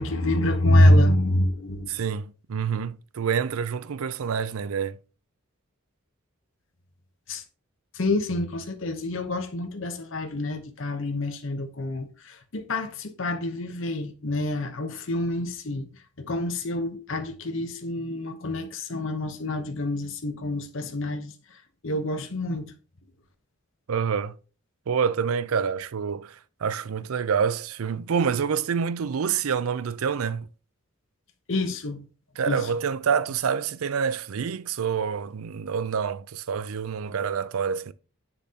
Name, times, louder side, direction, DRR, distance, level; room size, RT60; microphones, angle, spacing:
voice 1, 0.0-1.9 7.3-7.4 7.9-15.8 16.2-21.3 21.8-22.7 31.5-32.0 32.5-32.6, left 1 dB, 65° left, 0.9 m, -26 dB
voice 2, 1.9-5.0 23.9-24.3 24.9-30.5 32.4-37.9, right 6 dB, 85° right, 0.5 m, -27 dB
7.5 x 6.9 x 2.8 m
head